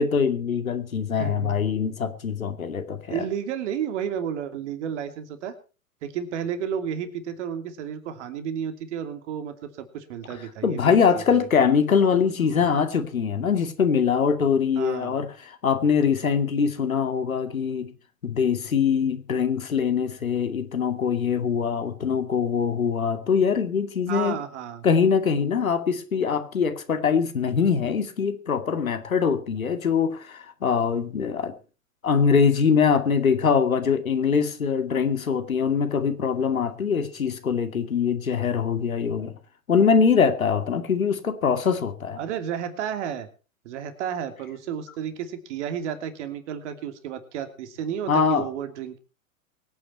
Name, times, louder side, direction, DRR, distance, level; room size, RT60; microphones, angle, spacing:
voice 1, 0.0-3.2 10.6-17.9 18.2-24.4 24.8-31.5 32.0-39.3 39.7-42.2 48.1-48.5, left 6 dB, 80° left, 10 dB, 2.4 m, -23 dB
voice 2, 1.1-1.6 3.1-5.5 6.0-11.5 12.1-12.6 14.8-15.1 24.1-24.8 42.2-43.3 43.6-49.0, right 8 dB, 60° right, 9 dB, 2.9 m, -32 dB
23.5 x 9.4 x 4.3 m, 0.35 s
hypercardioid pair, 100°, 41 cm